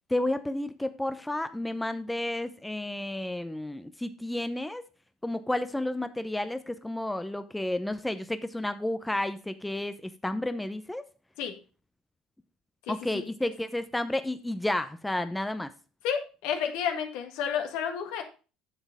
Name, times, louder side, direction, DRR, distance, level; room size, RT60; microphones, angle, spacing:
voice 1, 0.1-4.8 5.2-11.0 12.9-15.7, left 1 dB, 10° left, 11 dB, 0.6 m, -31 dB
voice 2, 12.9-13.3 16.0-18.2, left 8 dB, 70° left, 5 dB, 1.7 m, -31 dB
8.8 x 7.2 x 3.5 m, 0.33 s
hypercardioid pair, 65°, 0 cm